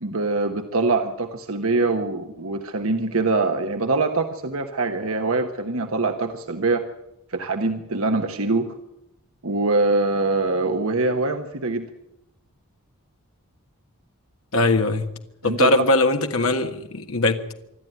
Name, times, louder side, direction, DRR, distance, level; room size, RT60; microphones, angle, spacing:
voice 1, 0.0-6.8 7.3-8.7 9.4-11.8 15.4-15.8, right 3 dB, 70° right, 5 dB, 1.4 m, -23 dB
voice 2, 14.5-15.0 15.4-17.5, left 2 dB, 70° left, 5 dB, 1.5 m, -21 dB
25.5 x 12.5 x 9.2 m, 0.84 s
head